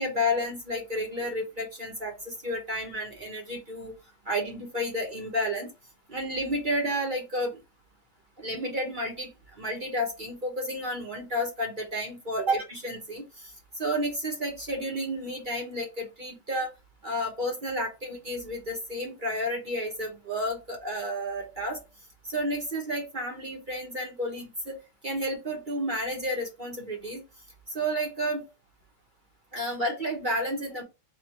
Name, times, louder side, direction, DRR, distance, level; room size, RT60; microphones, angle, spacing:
voice 1, 0.0-3.9 4.3-5.7 6.1-7.6 8.4-9.3 9.6-13.2 13.8-16.7 17.0-21.8 22.3-24.8 25.0-27.2 27.7-28.4 29.5-30.8, equal, 35° right, 1 dB, 1.0 m, -31 dB
4.2 x 2.5 x 3.0 m, 0.26 s
omnidirectional pair, 1.9 m